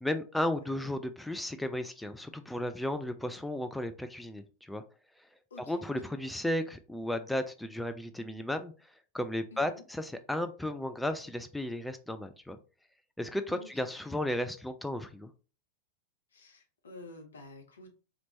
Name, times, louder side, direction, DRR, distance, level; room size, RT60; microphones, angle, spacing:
voice 1, 0.0-4.8 5.2-5.3 5.6-12.6 13.2-15.3, left 1 dB, 5° left, 9 dB, 0.3 m, -34 dB
voice 2, 5.5-6.0 9.5-9.8 13.5-13.7 16.3-17.9, left 2 dB, 70° left, 4 dB, 1.0 m, -50 dB
4.1 x 2.9 x 2.8 m, 0.35 s
figure-of-eight pair, 90°, 0 cm